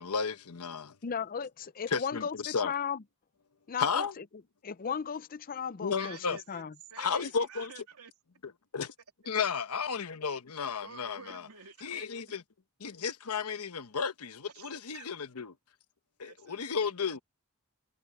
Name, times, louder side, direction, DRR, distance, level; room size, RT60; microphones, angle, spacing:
voice 1, 0.0-1.0 1.9-2.7 3.8-4.1 5.8-6.4 7.0-7.7 8.7-8.9 9.3-11.4 11.8-12.4 12.8-15.5 16.2-17.2, left 5 dB, 85° left, 1.0 m, -33 dB
voice 2, 1.0-3.0 3.7-4.2 4.6-6.2 6.5-6.7, left 7 dB, 40° left, 0.5 m, -35 dB
voice 3, 6.0-6.6 6.9-8.1 10.8-12.1 14.5-14.7 14.9-15.1 16.2-16.9, right 6 dB, 85° right, 3.1 m, -50 dB
head